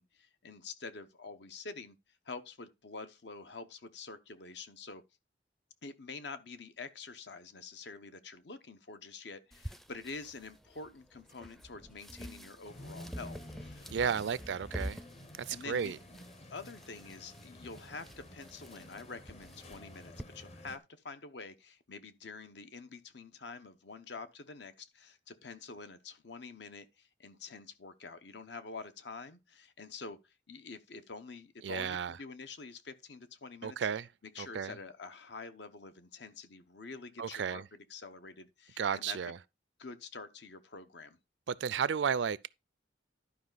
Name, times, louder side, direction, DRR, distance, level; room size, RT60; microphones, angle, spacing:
voice 1, 0.0-2.0 2.2-5.0 5.8-14.3 15.5-15.9 16.5-33.9 34.2-39.2 39.8-41.2, left 4 dB, 70° left, 0.9 m, -47 dB
sound 1, 9.5-20.2, equal, ahead, 0.5 m, -48 dB
sound 2, 12.6-20.8, left 1 dB, 35° left, 0.9 m, -52 dB
voice 2, 13.9-15.0 15.5-16.0 31.6-32.2 33.6-34.1 34.4-34.7 37.2-37.6 38.8-39.4 41.5-42.5, right 7 dB, 70° right, 0.4 m, -33 dB
11.5 x 5.2 x 3.9 m
head